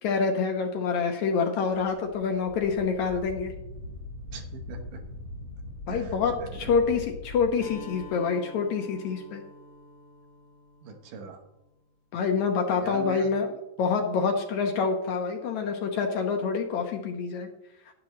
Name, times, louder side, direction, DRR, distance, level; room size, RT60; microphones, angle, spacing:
voice 1, 0.0-3.5 5.9-9.4 12.1-13.5 13.8-17.5, left 5 dB, 70° left, 4 dB, 2.0 m, -27 dB
Wind, 1.7-8.1, left 2 dB, 55° right, 4.0 m, -41 dB
voice 2, 4.3-5.0 5.9-6.8 10.8-11.4 12.8-13.3, right 5 dB, 75° right, 4 dB, 2.7 m, -41 dB
Acoustic guitar, 7.6-11.5, equal, 55° left, 1.3 m, -47 dB
11.0 x 10.5 x 3.1 m, 0.92 s
omnidirectional pair, 3.9 m